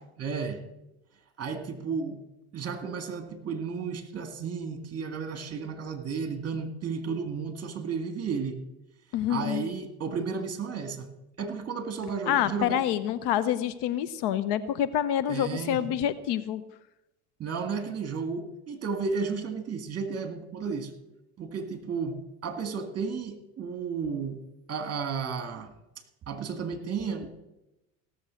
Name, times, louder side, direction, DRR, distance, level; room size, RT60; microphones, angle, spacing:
voice 1, 0.2-0.6 1.4-2.2 2.5-8.6 9.3-11.1 11.4-12.8 15.3-15.8 17.4-20.9 21.4-24.4 24.7-25.7 26.3-27.3, right 5 dB, 30° right, 8 dB, 2.1 m, -33 dB
voice 2, 9.1-9.6 12.3-16.6, left 10 dB, 55° left, 15 dB, 0.9 m, -27 dB
16.5 x 7.1 x 6.4 m, 0.95 s
hypercardioid pair, 90°, 48 cm